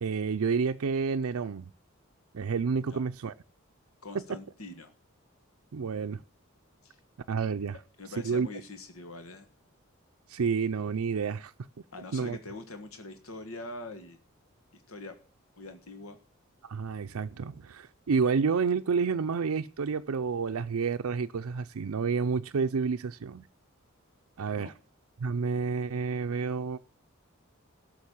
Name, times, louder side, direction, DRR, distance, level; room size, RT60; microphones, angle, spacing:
voice 1, 0.0-1.7 2.3-3.3 4.3-4.4 5.7-6.2 7.3-7.8 8.2-8.5 10.3-11.5 12.1-12.4 16.6-23.5 24.4-24.7 25.2-26.8, right 5 dB, 90° right, 0.5 m, -29 dB
voice 2, 4.0-4.9 6.8-7.0 8.0-9.5 11.9-14.2 14.9-15.2 15.6-16.2 24.5-24.7, left 2 dB, 80° left, 1.5 m, -43 dB
13.0 x 6.4 x 8.2 m
head